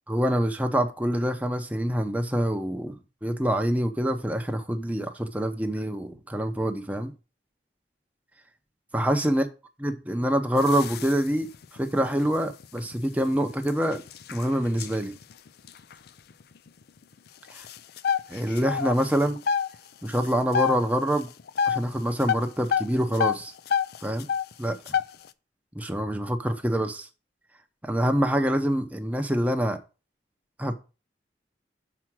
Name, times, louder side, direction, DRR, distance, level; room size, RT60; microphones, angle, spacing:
voice 1, 0.1-7.1 8.9-9.5 9.8-14.0 14.3-15.1 18.3-19.4 20.0-21.3 21.7-23.5 24.0-24.3 24.6-24.8 25.7-27.1 27.8-29.8 30.6-30.7, equal, 10° right, 0.7 m, -26 dB
sound 1, 10.6-16.7 17.0-17.1 17.5-19.7 20.0-20.8 21.0-21.9 22.2-24.5 24.8-25.3, left 7 dB, 60° left, 0.4 m, -28 dB
5.9 x 4.3 x 6.1 m
head